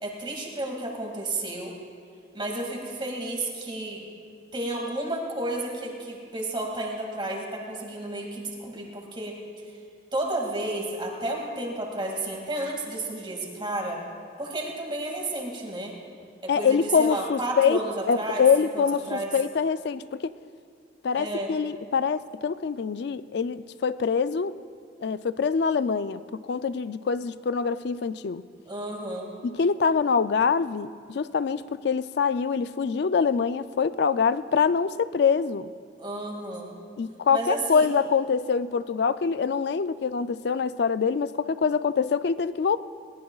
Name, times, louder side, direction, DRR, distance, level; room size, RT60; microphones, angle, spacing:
voice 1, 0.0-1.7 2.3-4.0 4.5-9.4 10.1-14.0 14.4-15.9 16.4-19.3 21.1-21.5 28.7-29.3 36.0-36.8 37.3-37.9, right 1 dB, 25° right, 0 dB, 2.2 m, -32 dB
voice 2, 16.5-17.8 18.1-20.3 21.0-24.5 25.0-28.4 29.4-35.7 37.0-42.8, left 6 dB, 60° left, 14 dB, 0.4 m, -25 dB
21.5 x 18.5 x 2.4 m, 2.3 s
head